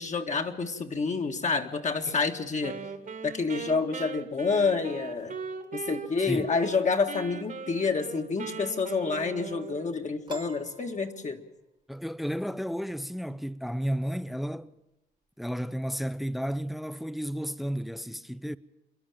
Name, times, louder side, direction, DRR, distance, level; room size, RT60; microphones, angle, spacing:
voice 1, 0.0-2.8 3.2-5.4 5.7-11.4, left 4 dB, 35° left, 1.8 m, -28 dB
Wind instrument woodwind instrument, 2.6-6.8 7.1-10.0, right 5 dB, 40° right, 1.7 m, -40 dB
Piano, 10.3-11.8, right 3 dB, 25° right, 1.0 m, -46 dB
voice 2, 11.9-14.7 15.4-18.6, equal, ahead, 0.6 m, -32 dB
27.0 x 11.0 x 8.8 m
cardioid pair, 90°, 20 cm